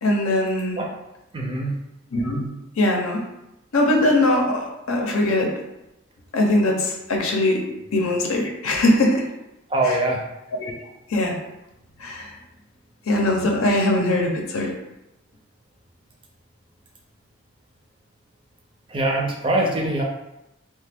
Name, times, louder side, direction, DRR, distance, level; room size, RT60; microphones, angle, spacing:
voice 1, 0.0-0.8 2.1-2.5 2.8-3.3 3.7-5.5 6.3-7.6 7.9-9.2 9.8-10.0 10.6-10.7 11.1-11.3 12.0-12.3 13.1-14.7, left 1 dB, 85° left, 1 dB, 0.6 m, -21 dB
voice 2, 1.3-1.8 9.7-10.2 18.9-20.0, right 2 dB, 25° right, 0 dB, 0.4 m, -23 dB
2.9 x 2.2 x 3.4 m, 0.90 s
head